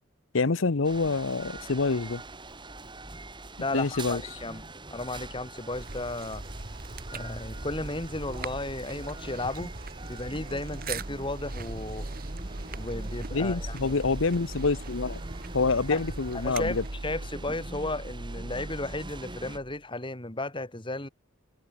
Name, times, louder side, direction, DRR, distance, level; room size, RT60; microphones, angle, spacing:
voice 1, 0.3-2.2 3.7-4.2 13.3-15.2 15.5-16.8, left 4 dB, 70° left, 0.9 m, -26 dB
sound 1, 0.8-19.6, right 2 dB, 25° right, 5.4 m, -44 dB
voice 2, 3.6-4.6 4.9-6.4 7.1-9.7 10.1-12.1 12.8-14.0 15.9-16.0 16.3-21.1, left 2 dB, 25° left, 2.7 m, -34 dB
sound 2, 5.7-17.1, right 3 dB, 45° right, 1.8 m, -41 dB
sound 3, 10.2-19.8, right 1 dB, 85° right, 1.7 m, -41 dB
open air
head